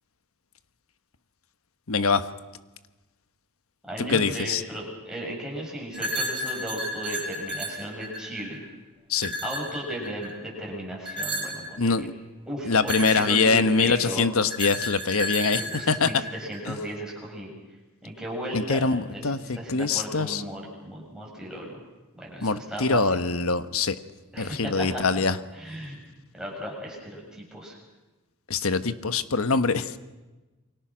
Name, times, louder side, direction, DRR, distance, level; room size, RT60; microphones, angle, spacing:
voice 1, 1.9-2.2 4.0-4.6 9.1-9.3 11.8-12.1 12.6-15.6 15.9-16.1 16.7-16.8 18.5-20.4 22.4-23.9 24.4-25.4 28.5-30.0, left 4 dB, 70° left, 12 dB, 1.2 m, -24 dB
voice 2, 3.8-8.6 9.4-11.9 12.5-14.2 15.6-17.5 18.0-18.9 19.1-21.8 22.1-23.2 24.3-25.2 25.5-26.0 26.3-27.8, right 1 dB, 5° right, -3 dB, 7.1 m, -35 dB
sound 1, 5.9-8.6 9.1-10.4 11.1-11.7 12.7-14.0 14.5-16.6, equal, 25° right, 5.9 m, -32 dB
28.5 x 23.5 x 6.2 m, 1.1 s
head